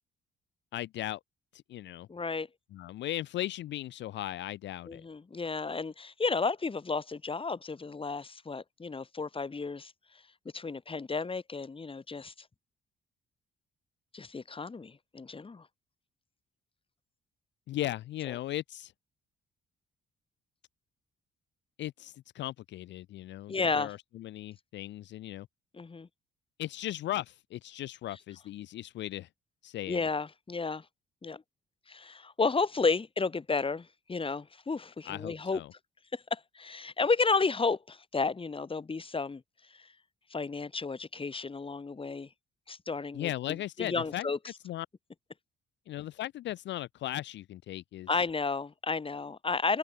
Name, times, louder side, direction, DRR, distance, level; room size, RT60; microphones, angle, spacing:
voice 1, 0.7-1.2 1.5-2.1 2.7-5.0 17.7-18.9 21.8-25.5 26.6-29.3 29.6-30.0 35.1-35.7 43.1-44.3 44.6-44.9 45.9-48.1, left 14 dB, 65° left, 0.5 m, -37 dB
voice 2, 2.1-2.5 4.9-9.9 10.5-12.3 14.1-15.7 18.3-18.4 23.5-23.9 25.7-26.1 29.9-30.8 31.2-31.4 31.9-35.6 36.1-39.4 39.8-39.9 40.3-42.3 42.7-44.4 48.1-49.8, left 4 dB, 25° left, 2.5 m, -32 dB
cardioid pair, 90°, 20 cm